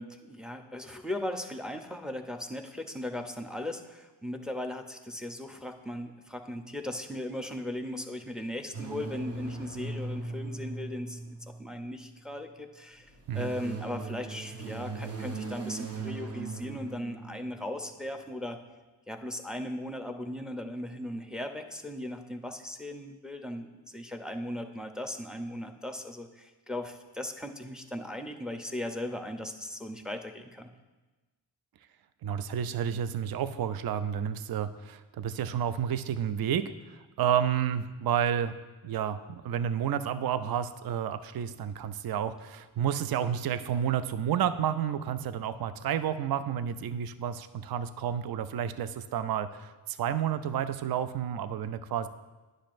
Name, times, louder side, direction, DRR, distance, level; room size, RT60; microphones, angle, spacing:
voice 1, 0.0-11.2 11.6-18.6 19.1-30.7, left 1 dB, ahead, 5 dB, 0.6 m, -38 dB
sound 1, 8.7-12.1 13.0-17.8, right 3 dB, 30° right, 0.8 m, -39 dB
voice 2, 32.2-38.5 38.8-52.1, right 9 dB, 50° right, 12 dB, 0.5 m, -30 dB
10.0 x 6.4 x 2.5 m, 1.2 s
cardioid pair, 45°, 47 cm